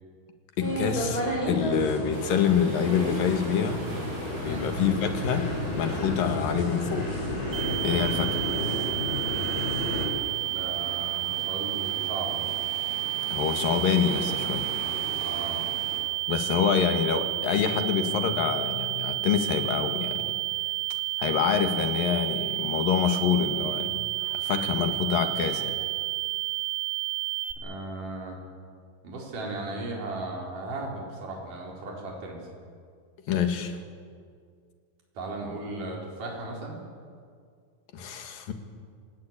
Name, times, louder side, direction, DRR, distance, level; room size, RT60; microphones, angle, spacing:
voice 1, 0.6-3.8 4.4-7.1 7.8-8.4 13.3-14.7 16.3-20.3 21.2-25.8 33.3-33.8 37.9-38.5, left 7 dB, 65° left, 6 dB, 3.4 m, -26 dB
sound 1, 0.6-10.1, left 1 dB, 25° left, 6.4 m, -31 dB
sound 2, 2.1-16.0, right 1 dB, 75° right, 9.2 m, -42 dB
sound 3, 7.5-27.5, right 18 dB, 5° left, 2.4 m, -30 dB
voice 2, 10.5-12.5 15.2-15.6 27.6-28.4 29.0-32.4 35.2-36.8, right 2 dB, 55° right, -1 dB, 5.7 m, -36 dB
27.0 x 18.5 x 8.8 m, 2.1 s
omnidirectional pair, 4.4 m